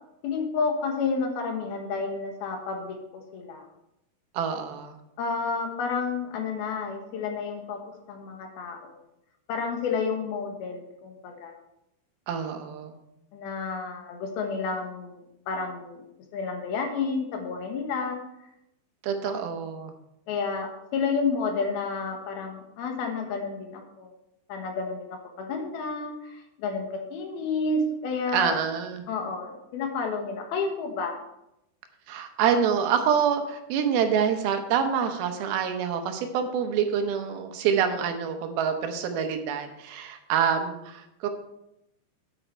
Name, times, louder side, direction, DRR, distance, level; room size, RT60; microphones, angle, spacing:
voice 1, 0.2-3.6 5.2-7.8 8.1-9.0 9.5-11.5 13.3-15.2 15.5-16.0 16.3-18.2 19.2-19.3 20.3-24.1 24.5-28.6 29.1-31.2, left 4 dB, 75° left, 3 dB, 3.2 m, -30 dB
voice 2, 4.3-5.0 12.3-13.0 19.0-19.9 28.3-29.0 32.1-41.3, right 7 dB, 75° right, 6 dB, 2.7 m, -26 dB
9.2 x 8.5 x 4.4 m, 0.84 s
omnidirectional pair, 4.5 m